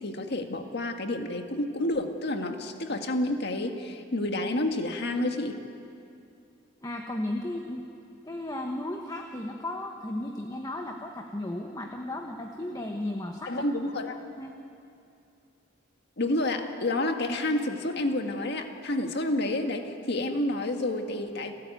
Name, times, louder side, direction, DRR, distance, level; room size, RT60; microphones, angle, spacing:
voice 1, 0.0-5.6 13.5-14.2 16.2-21.5, left 1 dB, 60° left, 5 dB, 1.8 m, -29 dB
voice 2, 6.8-7.8 8.2-13.7 14.3-14.5, left 1 dB, 20° left, 2 dB, 1.2 m, -35 dB
30.0 x 13.5 x 9.2 m, 2.6 s
head